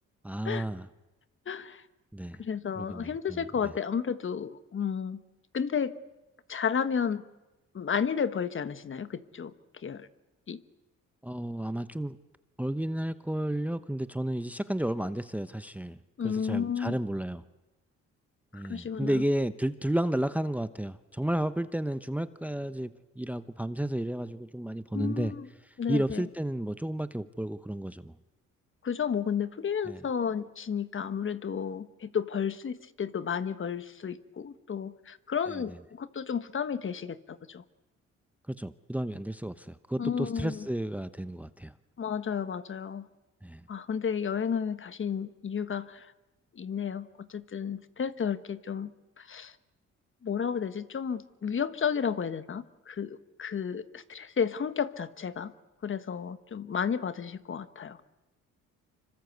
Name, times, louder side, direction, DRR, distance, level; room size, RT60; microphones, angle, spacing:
voice 1, 0.2-0.9 2.1-2.4 2.7-3.7 11.2-12.2 12.6-16.0 16.2-17.4 18.5-25.3 25.9-28.1 29.8-30.0 35.5-35.8 38.5-41.7 43.4-43.6, right 1 dB, 5° right, 13 dB, 0.8 m, -32 dB
voice 2, 1.5-1.8 2.4-5.2 5.5-5.9 6.5-7.2 7.7-9.5 9.8-10.1 10.5-10.6 16.2-17.0 18.5-19.2 24.9-25.5 25.8-26.2 28.8-37.6 40.0-40.7 42.0-43.1 43.7-46.1 46.5-48.9 49.2-49.5 50.2-55.5 55.8-58.0, left 7 dB, 40° left, 13 dB, 1.3 m, -32 dB
26.5 x 25.0 x 8.1 m, 1.0 s
cardioid pair, 90°, 30 cm